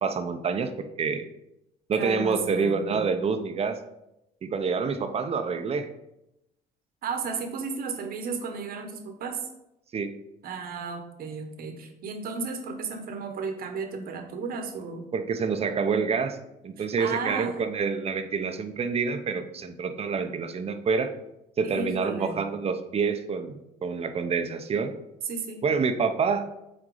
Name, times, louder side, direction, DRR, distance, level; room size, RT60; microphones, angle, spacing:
voice 1, 0.0-1.3 1.9-3.8 4.4-5.9 9.9-10.2 15.1-16.4 16.6-21.1 21.6-24.9 25.6-26.5, right 5 dB, 35° right, 8 dB, 0.8 m, -27 dB
voice 2, 1.9-3.0 7.0-9.5 10.4-15.1 16.8-17.5 21.6-22.4 25.2-25.6, right 5 dB, 60° right, 5 dB, 1.2 m, -34 dB
6.2 x 4.3 x 4.9 m, 0.87 s
cardioid pair, 110°, 17 cm